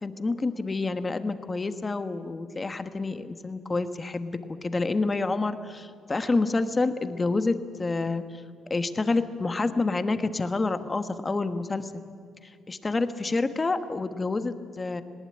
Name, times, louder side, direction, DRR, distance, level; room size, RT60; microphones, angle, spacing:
voice 1, 0.0-8.4 8.7-11.9 12.4-15.0, left 3 dB, 25° left, 10 dB, 1.3 m, -28 dB
19.5 x 18.0 x 9.8 m, 2.2 s
cardioid pair, 90°, 0 cm